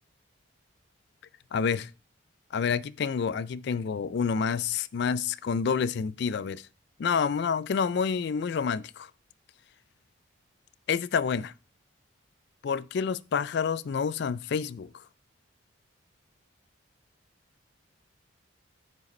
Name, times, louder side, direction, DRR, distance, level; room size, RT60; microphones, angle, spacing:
voice 1, 1.5-1.9 2.5-6.7 7.0-9.1 10.9-11.5 12.6-15.0, left 6 dB, 55° left, 0.3 m, -28 dB
9.2 x 5.0 x 3.1 m
head